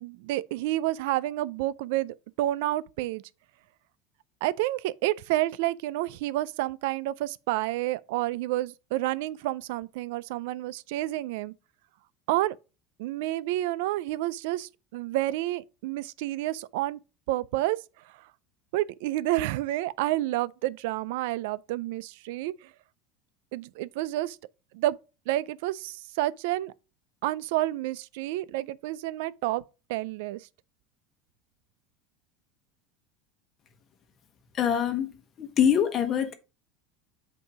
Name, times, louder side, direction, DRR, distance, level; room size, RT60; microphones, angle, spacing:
voice 1, 0.0-3.2 4.4-11.5 12.3-12.6 13.0-17.0 17.3-17.8 18.7-22.5 23.5-24.4 24.7-25.0 25.3-26.7 27.2-29.6 29.9-30.4, right 16 dB, 75° right, 0.3 m, -29 dB
voice 2, 34.6-35.1 35.4-36.3, left 8 dB, 35° left, 1.0 m, -24 dB
8.3 x 2.8 x 4.8 m
supercardioid pair, 135°, 0 cm